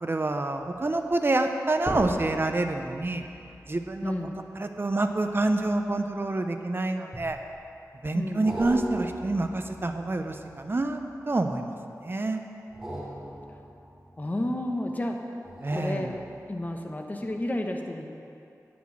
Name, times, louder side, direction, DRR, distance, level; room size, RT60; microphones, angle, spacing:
voice 1, 0.0-3.2 3.7-4.1 4.6-7.4 8.0-11.0 11.3-11.7 12.0-12.4 15.6-16.1, right 2 dB, 40° right, 6 dB, 0.7 m, -27 dB
sound 1, 0.7-0.9 1.8-6.4 7.1-7.7 8.4-11.4 12.6-14.7 15.4-16.9 17.3-17.4, equal, 5° right, 2.4 m, -40 dB
voice 2, 4.0-4.3 8.1-8.5 14.2-15.4 15.7-16.2 16.5-18.1, left 1 dB, 25° left, 3 dB, 0.9 m, -31 dB
9.4 x 6.1 x 7.3 m, 2.7 s
wide cardioid pair, 80°, 6 cm